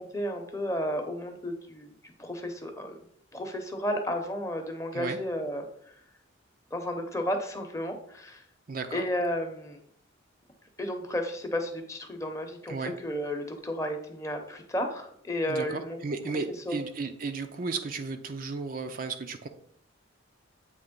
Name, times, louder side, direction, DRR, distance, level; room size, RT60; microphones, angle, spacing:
voice 1, 0.1-1.9 2.2-3.0 3.3-5.7 6.7-8.4 8.9-9.8 10.8-12.8 13.0-16.0 16.7-16.8, equal, 15° left, 4 dB, 0.8 m, -32 dB
voice 2, 8.7-9.0 12.7-12.9 15.5-19.5, right 4 dB, 45° right, 6 dB, 0.5 m, -34 dB
8.1 x 3.2 x 5.2 m, 0.66 s
head